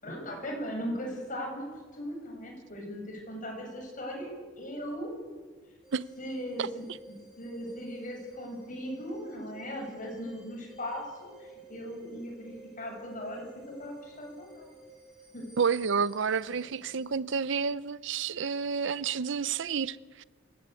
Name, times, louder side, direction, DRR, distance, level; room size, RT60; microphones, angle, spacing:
voice 1, 0.0-5.1 6.2-6.8 7.4-13.5 13.8-14.7 15.3-15.5 16.5-16.7, equal, 40° left, 7.9 m, -38 dB
sound 1, 5.8-17.1, right 1 dB, 5° right, 5.9 m, -52 dB
voice 2, 15.6-20.2, right 6 dB, 65° right, 0.6 m, -30 dB
27.0 x 16.5 x 8.5 m
head